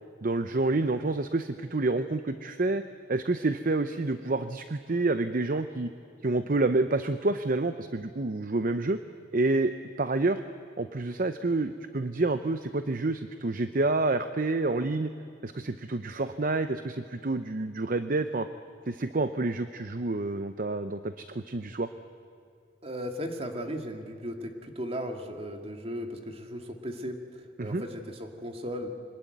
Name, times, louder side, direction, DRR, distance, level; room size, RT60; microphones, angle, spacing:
voice 1, 0.2-2.8 3.1-5.9 6.2-9.0 9.3-10.4 10.8-15.1 15.4-18.5 18.9-21.9 27.6-27.8, right 2 dB, 50° right, 10 dB, 0.7 m, -28 dB
voice 2, 22.8-28.9, equal, 35° right, 4 dB, 2.2 m, -36 dB
25.0 x 20.5 x 9.2 m, 2.5 s
head